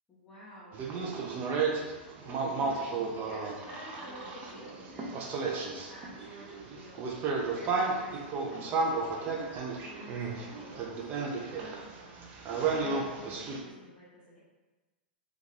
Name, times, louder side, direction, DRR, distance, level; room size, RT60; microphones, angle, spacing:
voice 1, 0.1-0.9 3.2-7.1 7.5-8.7 9.3-11.4 12.0-14.4, equal, 15° left, -9 dB, 0.7 m, -50 dB
sound 1, 0.7-13.6, right 4 dB, 35° right, 0.4 m, -33 dB
2.4 x 2.4 x 3.2 m, 1.2 s
figure-of-eight pair, 100°, 5 cm